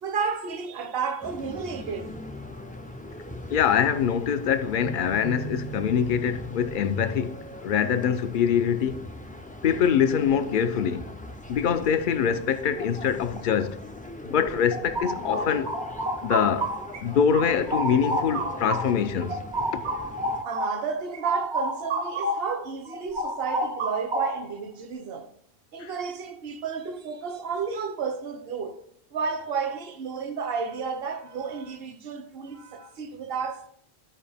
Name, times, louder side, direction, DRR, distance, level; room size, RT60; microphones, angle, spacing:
voice 1, 0.0-2.1 20.4-25.3 25.7-28.8 29.1-33.7, right 5 dB, 65° right, 1.0 m, -32 dB
sound 1, 1.2-20.4, equal, 15° left, 0.3 m, -40 dB
voice 2, 3.5-9.1 9.6-11.1 11.5-13.8 14.2-15.7 16.2-16.7 17.0-19.4 19.7-19.8 25.8-25.9, left 7 dB, 55° left, 0.7 m, -24 dB
sound 2, 14.5-17.0 17.3-22.5 22.9-24.6, right 1 dB, 85° right, 1.5 m, -30 dB
13.0 x 4.8 x 3.4 m
omnidirectional pair, 1.1 m